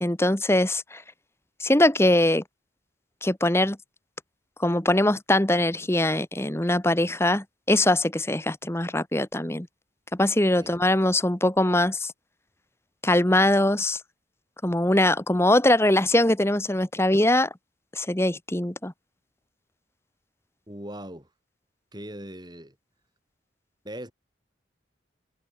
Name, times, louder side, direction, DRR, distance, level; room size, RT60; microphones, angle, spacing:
voice 1, 0.0-1.0 1.6-2.4 3.2-3.8 4.6-9.7 10.1-12.1 13.0-14.0 14.6-17.5 17.9-18.9, left 1 dB, 15° left, 1.3 m, -22 dB
voice 2, 20.7-21.3 21.9-22.7 23.8-24.1, right 1 dB, 20° right, 7.9 m, -39 dB
head